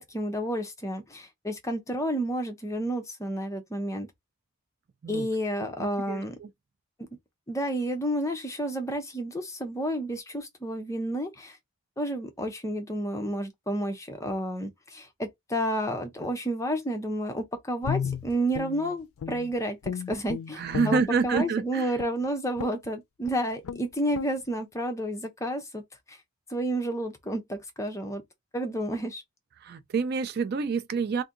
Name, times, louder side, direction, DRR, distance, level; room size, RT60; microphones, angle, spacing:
voice 1, 0.0-4.1 5.1-6.4 7.5-11.6 12.0-25.8 26.1-26.2 26.5-28.2 28.5-29.2, right 1 dB, 15° left, 0.6 m, -31 dB
voice 2, 5.0-5.4 5.8-6.5 20.5-21.9 29.6-31.2, right 5 dB, 45° right, 0.4 m, -28 dB
Guitar, 17.8-19.5 19.8-21.6 22.0-22.2 22.6-22.9 23.2-23.4 23.6-23.8 24.1-24.3, left 7 dB, 80° left, 0.4 m, -34 dB
2.7 x 2.6 x 3.7 m
head